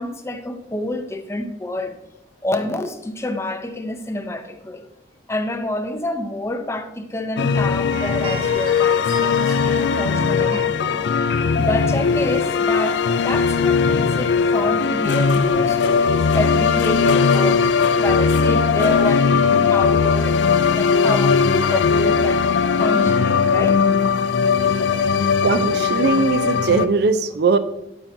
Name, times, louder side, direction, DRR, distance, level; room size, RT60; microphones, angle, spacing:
voice 1, 0.0-1.9 2.4-4.9 5.3-11.3 11.6-17.7 18.0-23.8 24.6-24.9, left 1 dB, 15° left, 0.5 m, -28 dB
sound 1, 7.4-26.9, left 5 dB, 65° left, 0.4 m, -18 dB
sound 2, 7.9-15.4, right 2 dB, 30° right, 2.1 m, -37 dB
voice 2, 25.4-27.6, right 4 dB, 60° right, 0.5 m, -19 dB
11.5 x 5.7 x 2.7 m
head